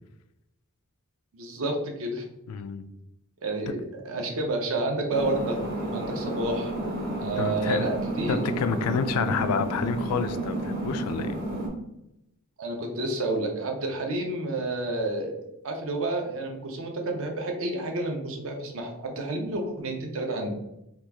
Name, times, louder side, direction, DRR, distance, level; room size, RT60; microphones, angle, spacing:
voice 1, 1.3-2.2 3.4-5.6 5.9-6.7 7.2-8.4 12.6-15.3 15.6-20.5, right 2 dB, 65° right, 2 dB, 0.6 m, -30 dB
voice 2, 2.5-2.8 3.7-3.8 7.4-7.9 8.3-11.3, left 6 dB, 85° left, 14 dB, 0.3 m, -28 dB
sound 1, 5.1-11.7, right 1 dB, 45° right, 0.9 m, -31 dB
2.9 x 2.3 x 3.3 m, 0.87 s
head